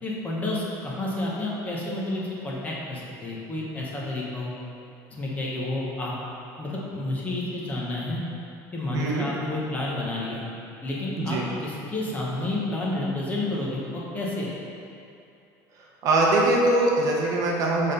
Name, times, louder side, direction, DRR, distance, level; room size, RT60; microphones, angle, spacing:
voice 1, 0.0-4.5 5.1-6.1 6.6-8.2 8.7-10.4 10.8-14.5, left 2 dB, 20° left, -4 dB, 1.0 m, -30 dB
voice 2, 8.9-9.3 11.2-11.5 16.0-17.9, right 2 dB, 45° right, -2 dB, 0.8 m, -22 dB
6.4 x 3.7 x 5.2 m, 2.6 s
cardioid pair, 165°, 8 cm